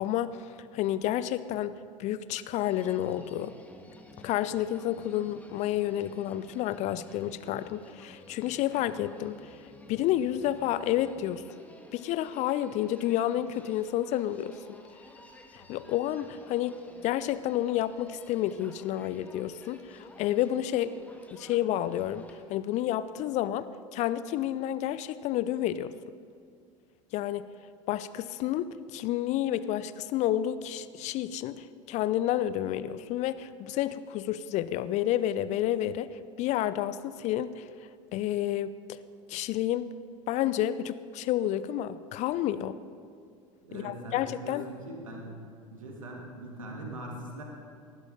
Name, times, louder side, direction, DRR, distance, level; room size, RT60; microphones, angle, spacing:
voice 1, 0.0-3.6 4.2-9.5 9.9-11.4 11.9-14.8 15.7-16.8 17.0-20.9 21.3-23.7 23.9-25.9 27.1-27.5 27.9-36.1 36.4-37.7 38.1-39.0 39.3-39.9 40.3-42.8 43.7-44.6, left 12 dB, 45° left, 15 dB, 0.6 m, -30 dB
Human voice, 2.6-22.4, left 1 dB, 10° left, 1.6 m, -52 dB
voice 2, 43.6-45.3 45.7-47.4, right 1 dB, 75° right, 0 dB, 2.4 m, -41 dB
19.0 x 11.0 x 4.1 m, 2.3 s
figure-of-eight pair, 70°, 17 cm